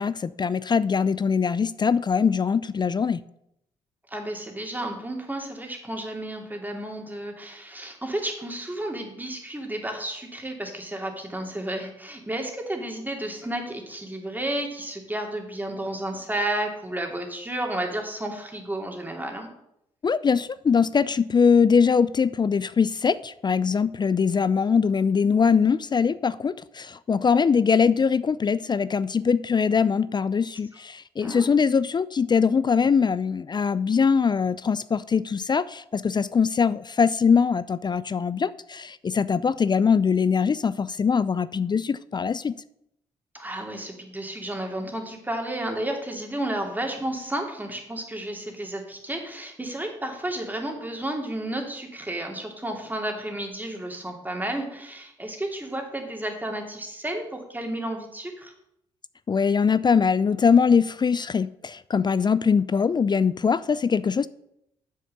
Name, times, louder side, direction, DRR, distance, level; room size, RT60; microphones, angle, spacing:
voice 1, 0.0-3.2 20.0-42.5 59.3-64.3, left 6 dB, 30° left, 17 dB, 0.4 m, -22 dB
voice 2, 4.1-19.5 31.2-31.5 43.3-58.5, right 1 dB, 10° right, 2 dB, 2.7 m, -32 dB
7.7 x 6.6 x 6.7 m, 0.78 s
hypercardioid pair, 45°, 14 cm